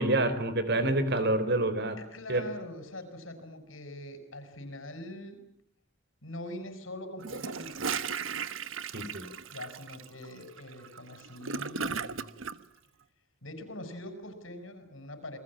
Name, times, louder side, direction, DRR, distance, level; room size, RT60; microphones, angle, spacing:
voice 1, 0.0-2.0 2.3-2.5 8.9-9.3, right 2 dB, 60° right, 11 dB, 4.1 m, -27 dB
voice 2, 2.0-5.4 6.2-8.1 9.5-12.3 13.4-15.4, left 1 dB, 90° left, 9 dB, 6.3 m, -43 dB
Gurgling / Toilet flush, 7.2-12.6, right 6 dB, 85° right, 1.2 m, -36 dB
29.0 x 21.5 x 8.8 m, 0.69 s
head